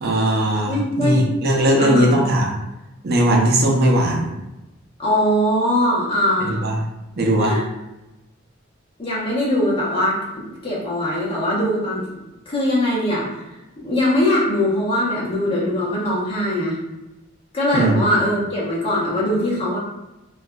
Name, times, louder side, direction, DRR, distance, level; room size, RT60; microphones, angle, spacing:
voice 1, 0.0-2.6 3.0-4.3 6.4-6.8 7.2-7.6 17.7-18.2, right 1 dB, 55° right, -1 dB, 0.5 m, -18 dB
voice 2, 0.7-1.3 1.8-2.1 5.0-6.6 7.4-7.6 9.0-12.0 12.5-13.3 13.8-16.8 17.5-19.8, left 1 dB, 30° left, -7 dB, 0.9 m, -21 dB
2.6 x 2.3 x 2.2 m, 0.98 s
head